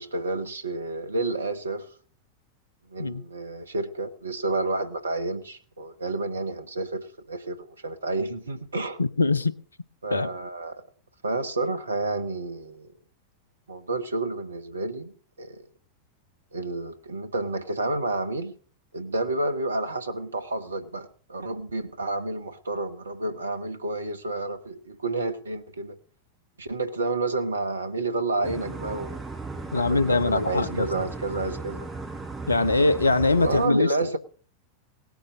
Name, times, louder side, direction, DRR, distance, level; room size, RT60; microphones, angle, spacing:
voice 1, 0.0-1.9 2.9-9.0 10.0-10.8 11.2-12.9 13.7-15.6 16.5-18.6 18.9-26.0 26.6-29.3 29.5-31.9 33.3-34.2, right 2 dB, 75° right, 1.3 m, -30 dB
voice 2, 9.0-9.5 10.1-10.3 29.7-30.9 32.5-33.9, left 3 dB, 80° left, 0.8 m, -22 dB
sound 1, 28.4-33.7, right 3 dB, 15° right, 5.2 m, -36 dB
18.5 x 9.0 x 6.2 m
figure-of-eight pair, 90°, 0 cm